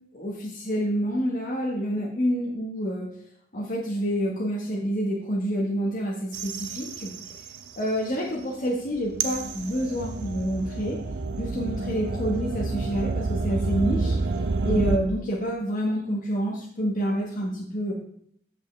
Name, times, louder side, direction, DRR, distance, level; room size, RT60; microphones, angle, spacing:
voice 1, 0.1-3.1 3.5-7.1 7.8-11.0 11.4-14.2 14.6-17.9, equal, 50° left, -3 dB, 1.3 m, -28 dB
sound 1, 6.3-7.9 8.3-15.0, right 3 dB, 85° right, 0.6 m, -29 dB
8.2 x 7.4 x 3.3 m, 0.65 s
head